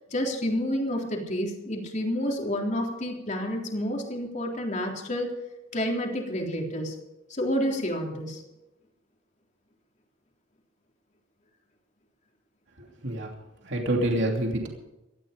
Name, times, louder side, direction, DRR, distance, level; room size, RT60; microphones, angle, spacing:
voice 1, 0.1-5.3 5.7-7.0 7.3-8.4, equal, 40° left, 1 dB, 3.7 m, -29 dB
voice 2, 12.8-13.3 13.6-14.7, right 1 dB, 65° right, 1 dB, 2.9 m, -27 dB
18.5 x 13.5 x 5.3 m, 0.94 s
head